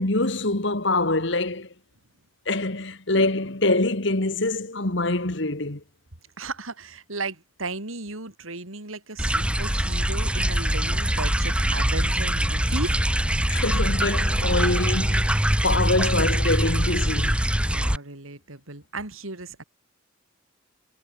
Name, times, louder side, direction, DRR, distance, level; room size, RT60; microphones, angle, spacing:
voice 1, 0.0-1.7 2.5-5.8 13.5-17.5, left 2 dB, 60° left, 2.0 m, -25 dB
voice 2, 6.4-13.1 17.7-19.6, right 3 dB, 85° right, 3.6 m, -35 dB
sound 1, 9.2-18.0, equal, 5° right, 1.4 m, -23 dB
head